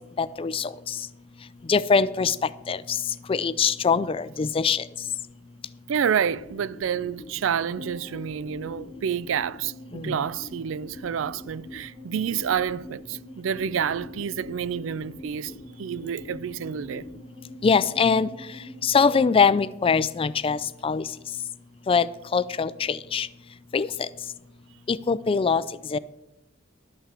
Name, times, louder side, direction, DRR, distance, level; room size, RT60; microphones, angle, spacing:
voice 1, 0.2-0.7 1.7-2.4 2.7-3.0 3.3-4.8 10.0-10.2 17.6-18.3 18.8-20.6 20.8-21.0 21.9-22.1 22.3-23.3 23.7-24.1 24.9-25.6 25.9-26.0, left 5 dB, 30° left, 0.3 m, -22 dB
voice 2, 5.9-15.5 15.8-17.0, right 8 dB, 75° right, 0.4 m, -29 dB
sound 1, 7.8-20.3 20.5-20.6, equal, 45° right, 1.6 m, -46 dB
12.0 x 5.6 x 7.4 m
head